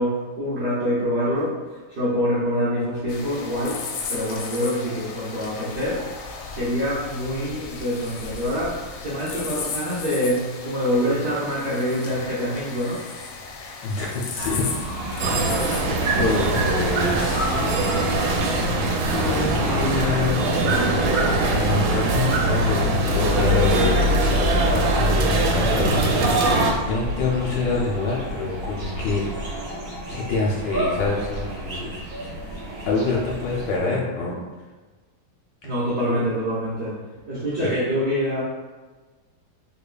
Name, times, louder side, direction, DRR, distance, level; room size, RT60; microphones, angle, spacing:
voice 1, 0.0-1.6 1.9-6.0 6.4-13.0 35.6-37.0 37.3-38.4, equal, 60° right, -10 dB, 0.6 m, -25 dB
sound 1, 3.1-18.7, left 5 dB, 90° left, 1.5 m, -36 dB
voice 2, 13.8-14.7 15.0-17.6 19.0-20.6 21.4-29.2 30.0-32.0 32.8-34.4 36.0-36.2 37.6-37.7, left 3 dB, 75° left, -3 dB, 1.1 m, -26 dB
sound 2, 14.4-33.8, equal, 40° right, 1.1 m, -28 dB
sound 3, 15.2-26.7, right 2 dB, 85° right, 1.4 m, -22 dB
4.0 x 2.8 x 2.2 m, 1.3 s
omnidirectional pair, 2.3 m